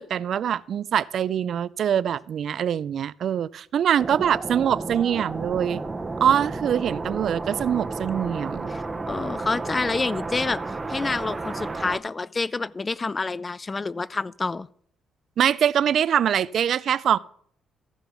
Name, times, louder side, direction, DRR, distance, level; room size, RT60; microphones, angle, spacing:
voice 1, 0.0-5.8 6.2-8.7 15.4-17.2, right 9 dB, 65° right, 0.3 m, -23 dB
sound 1, 4.0-12.0, right 3 dB, 20° right, 0.8 m, -32 dB
voice 2, 8.7-14.7, left 3 dB, 25° left, 0.3 m, -28 dB
14.5 x 5.2 x 6.0 m
cardioid pair, 90°, 0 cm